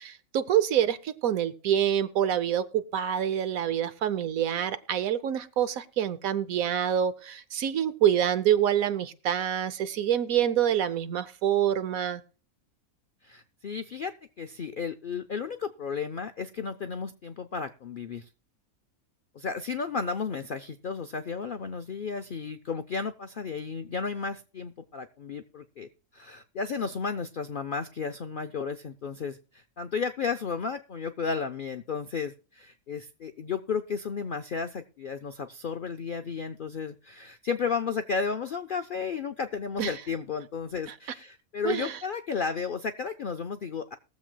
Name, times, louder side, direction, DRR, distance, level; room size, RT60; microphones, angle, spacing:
voice 1, 0.0-12.2 39.8-39.9 41.6-41.9, right 10 dB, 70° right, 13 dB, 1.1 m, -26 dB
voice 2, 13.2-18.3 19.3-44.0, left 5 dB, 65° left, 7 dB, 0.5 m, -33 dB
21.5 x 7.4 x 2.2 m, 0.35 s
omnidirectional pair, 1.6 m